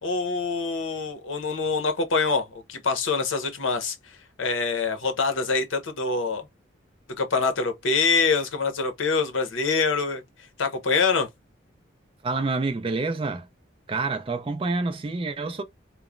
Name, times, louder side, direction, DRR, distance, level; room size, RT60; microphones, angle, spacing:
voice 1, 0.0-4.0 4.4-6.4 7.2-10.2 10.6-11.3, left 4 dB, 75° left, 0.7 m, -25 dB
voice 2, 12.2-13.5 13.9-15.6, right 3 dB, 25° right, 0.3 m, -27 dB
3.0 x 2.0 x 2.4 m
head